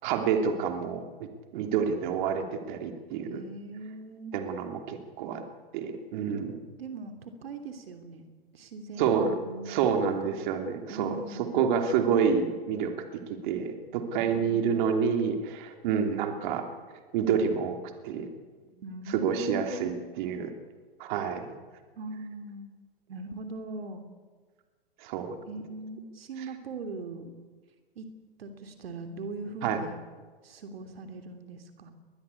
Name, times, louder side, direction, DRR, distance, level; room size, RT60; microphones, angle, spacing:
voice 1, 0.0-3.4 4.3-5.4 5.7-6.6 9.0-9.4 9.7-17.8 18.0-18.3 19.1-20.5 21.0-21.6 25.0-25.3 29.6-29.8, right 7 dB, 50° right, 5 dB, 3.2 m, -28 dB
voice 2, 3.2-4.3 6.8-8.2 8.5-10.4 10.9-11.6 18.8-20.1 22.0-22.7 23.1-24.0 25.5-27.3 27.9-28.1 28.4-30.0 30.4-31.9, right 3 dB, 75° right, 6 dB, 3.1 m, -40 dB
22.0 x 21.0 x 8.5 m, 1.4 s
hypercardioid pair, 120°, 30 cm